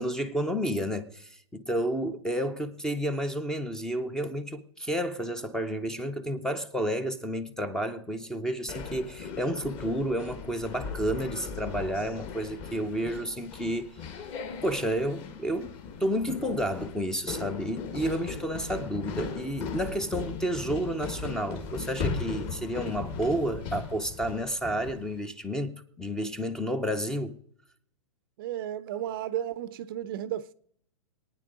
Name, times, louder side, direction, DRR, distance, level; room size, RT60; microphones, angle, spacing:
voice 1, 0.0-13.9 14.6-27.4, equal, 5° left, 0.6 m, -31 dB
sound 1, 8.7-25.2, left 5 dB, 30° left, 1.6 m, -38 dB
voice 2, 28.4-30.5, right 11 dB, 40° right, 0.5 m, -33 dB
23.5 x 9.4 x 3.8 m
hypercardioid pair, 155°, 18 cm